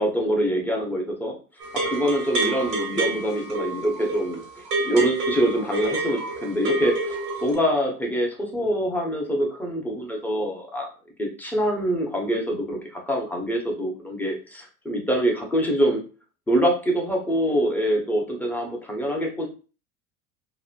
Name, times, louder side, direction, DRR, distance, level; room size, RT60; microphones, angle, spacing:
voice 1, 0.0-1.4 1.8-10.9 11.2-16.0 16.5-19.5, equal, 5° left, 0 dB, 0.7 m, -25 dB
sound 1, 1.6-7.5, right 2 dB, 85° right, 1.0 m, -28 dB
3.0 x 2.1 x 2.5 m, 0.35 s
hypercardioid pair, 75°, 46 cm